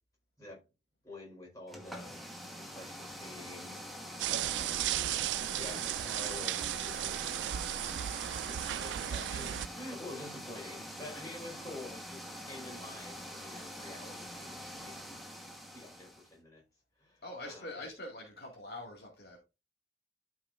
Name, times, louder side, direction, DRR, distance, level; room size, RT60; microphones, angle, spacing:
voice 1, 1.0-2.2 2.6-3.9 4.2-5.2 5.5-7.3 8.4-15.1 15.7-16.6 17.0-17.8, left 2 dB, 20° left, 4.6 m, -48 dB
sound 1, 1.7-16.3, equal, ahead, 1.2 m, -45 dB
sound 2, 4.2-9.7, right 12 dB, 85° right, 0.3 m, -35 dB
voice 2, 17.2-19.4, left 2 dB, 60° left, 2.1 m, -44 dB
12.5 x 5.4 x 2.5 m
head